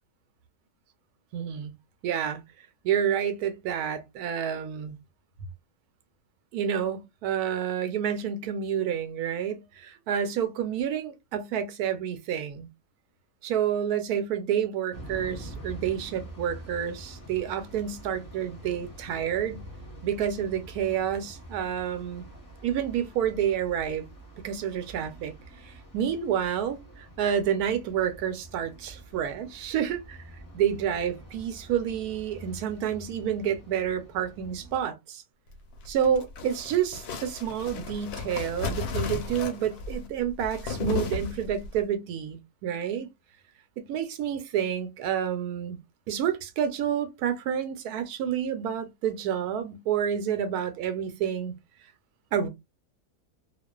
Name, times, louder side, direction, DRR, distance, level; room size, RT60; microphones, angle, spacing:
voice 1, 1.3-1.7 2.0-2.4 2.8-5.0 6.5-12.7 13.4-19.6 20.0-22.2 22.6-24.1 24.4-25.3 25.6-30.2 30.5-35.2 35.9-43.1 43.8-45.8 46.1-51.5 52.3-52.5, right 9 dB, 85° right, 1.1 m, -29 dB
sound 1, 14.9-34.9, right 1 dB, 15° left, 0.8 m, -46 dB
sound 2, 35.7-41.8, left 5 dB, 85° left, 1.2 m, -34 dB
2.4 x 2.3 x 2.2 m
omnidirectional pair, 1.6 m